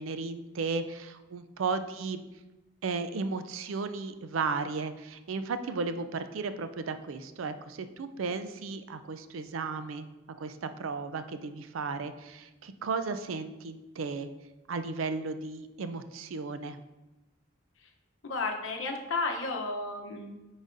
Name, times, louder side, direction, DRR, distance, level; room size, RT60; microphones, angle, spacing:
voice 1, 0.0-2.2 2.8-10.0 10.4-14.3 14.7-16.8, right 4 dB, 85° right, 10 dB, 0.4 m, -34 dB
voice 2, 18.2-20.3, left 3 dB, 70° left, 2 dB, 0.8 m, -33 dB
9.8 x 4.0 x 2.6 m, 1.1 s
head